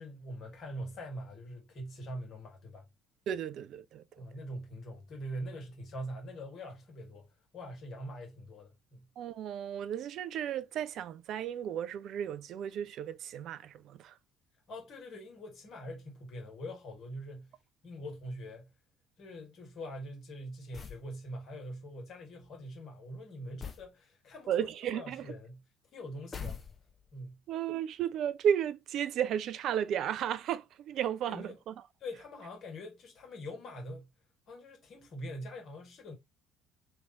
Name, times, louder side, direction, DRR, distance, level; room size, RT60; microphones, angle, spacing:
voice 1, 0.0-2.9 4.2-7.3 7.5-9.1 14.7-17.5 17.8-18.7 19.2-24.5 24.8-25.6 25.9-26.6 27.1-27.4 31.3-31.6 32.0-34.1 34.5-36.1, equal, 50° left, 1.6 m, -43 dB
voice 2, 3.3-4.2 9.2-14.2 24.5-25.3 27.5-31.8, right 9 dB, 55° right, 0.3 m, -34 dB
sound 1, 20.7-21.1 23.6-23.9 26.3-27.1, left 6 dB, 30° left, 0.7 m, -42 dB
3.1 x 2.5 x 3.9 m
figure-of-eight pair, 50°, 0 cm